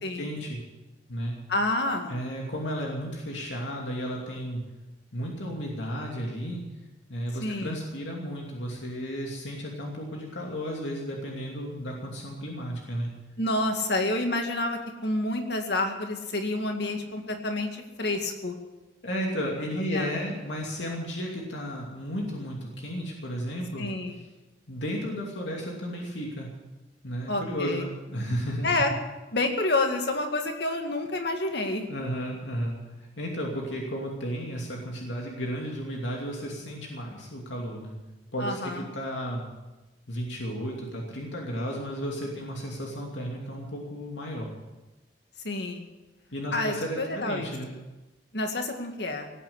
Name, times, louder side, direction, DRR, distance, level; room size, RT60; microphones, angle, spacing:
voice 1, 0.1-0.6 1.1-1.3 2.1-4.6 5.1-6.6 7.1-13.1 19.0-23.9 24.7-26.5 27.0-28.8 31.9-38.0 38.3-39.5 40.1-44.5 46.3-47.7, equal, 80° left, -1 dB, 2.7 m, -33 dB
voice 2, 1.5-2.1 7.4-7.8 13.4-18.6 19.9-20.3 23.8-24.2 27.3-27.9 28.6-28.9 29.3-31.9 38.4-38.8 45.4-45.8 46.5-47.5 48.3-49.3, left 2 dB, 60° left, 4 dB, 2.1 m, -29 dB
18.0 x 9.1 x 8.0 m, 1.1 s
head